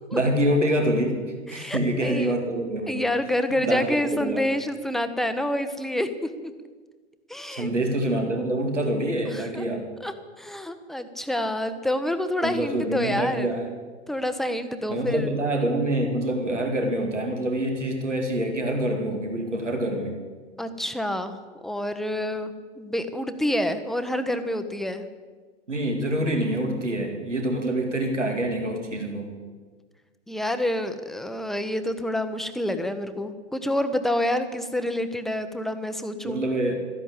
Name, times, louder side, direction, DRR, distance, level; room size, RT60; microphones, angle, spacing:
voice 1, 0.1-3.1 3.6-4.4 7.5-9.9 12.4-13.7 14.9-20.2 25.7-29.3 36.2-36.7, right 1 dB, 85° right, 3 dB, 2.3 m, -26 dB
voice 2, 1.5-2.4 2.9-6.1 7.3-7.7 9.3-9.6 10.0-13.5 14.1-15.3 20.6-21.4 21.6-25.1 30.3-36.4, left 1 dB, ahead, 9 dB, 0.9 m, -28 dB
13.0 x 11.0 x 8.4 m, 1.4 s
figure-of-eight pair, 90°, 35 cm